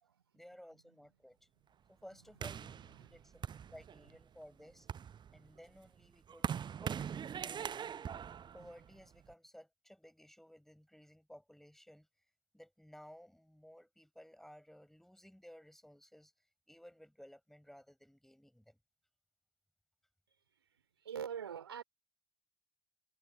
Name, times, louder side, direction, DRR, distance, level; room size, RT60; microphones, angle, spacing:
voice 1, 0.3-1.4 1.9-4.9 5.3-7.8 8.5-12.1 12.5-16.3 16.7-18.8, equal, ahead, 6.2 m, -57 dB
sound 1, 2.4-4.2 4.7-9.3, right 8 dB, 35° right, 0.7 m, -42 dB
voice 2, 21.0-21.8, right 8 dB, 80° right, 2.8 m, -42 dB
figure-of-eight pair, 50°, 13 cm